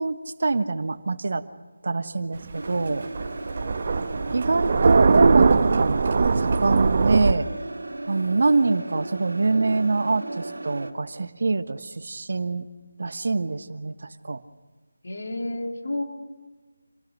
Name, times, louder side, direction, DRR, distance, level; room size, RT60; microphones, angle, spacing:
voice 1, 0.0-1.4 1.8-3.0 4.3-6.1 6.4-7.5 8.1-12.6 13.0-13.9 14.3-14.4, right 3 dB, 55° right, 11 dB, 1.2 m, -24 dB
Thunder, 2.4-7.3, right 4 dB, 40° right, 1.0 m, -21 dB
sound 1, 2.5-10.9, right 2 dB, 80° right, 2.5 m, -36 dB
voice 2, 15.0-16.0, left 1 dB, 60° left, 1 dB, 3.7 m, -32 dB
27.5 x 18.5 x 6.5 m, 1.3 s
figure-of-eight pair, 165°, 0 cm